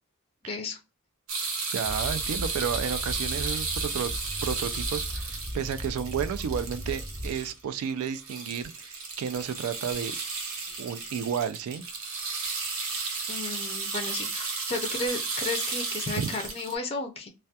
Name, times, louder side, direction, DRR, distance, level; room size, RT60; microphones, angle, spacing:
voice 1, 0.5-0.8 13.3-17.3, left 3 dB, 25° left, 0.4 m, -33 dB
sound 1, 1.3-7.6 7.9-16.8, right 4 dB, 65° right, 0.7 m, -34 dB
voice 2, 1.7-4.1 4.4-10.2 10.8-11.8 16.2-16.3, right 7 dB, 85° right, 0.3 m, -32 dB
sound 2, 1.8-7.6, equal, 30° right, 0.7 m, -37 dB
2.2 x 2.1 x 2.7 m
head